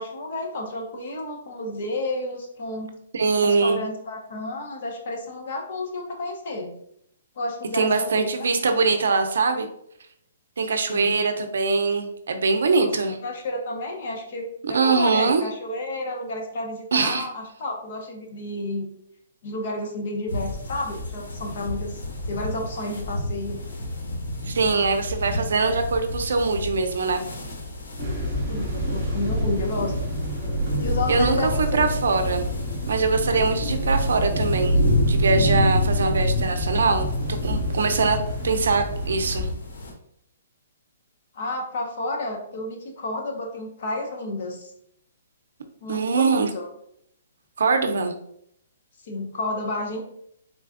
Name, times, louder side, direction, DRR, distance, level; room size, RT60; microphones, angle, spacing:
voice 1, 0.0-2.9 3.4-6.7 7.4-8.5 8.8-9.3 10.9-11.1 13.2-18.9 19.4-23.6 28.5-29.9 30.8-31.9 41.3-44.7 45.8-46.7 49.0-50.0, left 2 dB, 40° left, 2 dB, 0.6 m, -31 dB
voice 2, 3.1-3.8 7.7-9.7 10.6-13.2 14.7-15.4 16.9-17.3 24.5-27.2 31.1-32.4 32.9-34.8 35.1-38.2 38.4-39.5 45.9-46.5 47.6-48.1, right 4 dB, 75° right, 6 dB, 0.5 m, -22 dB
sound 1, 20.3-39.9, left 1 dB, 90° left, 0.9 m, -34 dB
sound 2, 28.0-39.5, equal, 20° right, 0.7 m, -25 dB
3.7 x 3.3 x 2.4 m, 0.72 s
hypercardioid pair, 180°, 0 cm